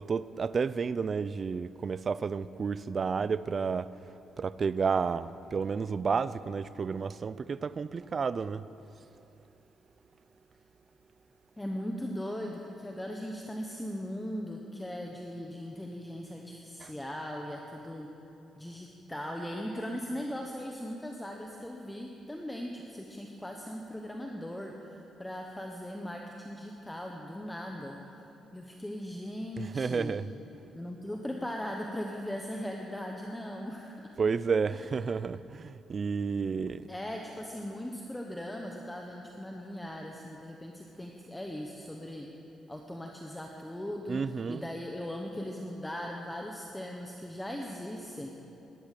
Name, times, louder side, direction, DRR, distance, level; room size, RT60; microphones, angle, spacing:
voice 1, 0.0-3.9 4.4-8.7 16.8-16.9 29.6-30.3 34.2-36.9 44.1-44.6, right 5 dB, 40° right, 0.4 m, -31 dB
voice 2, 11.6-18.1 18.6-28.0 28.5-30.2 30.7-33.9 34.7-34.9 36.9-42.3 42.7-44.2 44.5-48.3, equal, 10° left, 1.1 m, -39 dB
17.5 x 12.0 x 6.7 m
cardioid pair, 120°, 0 cm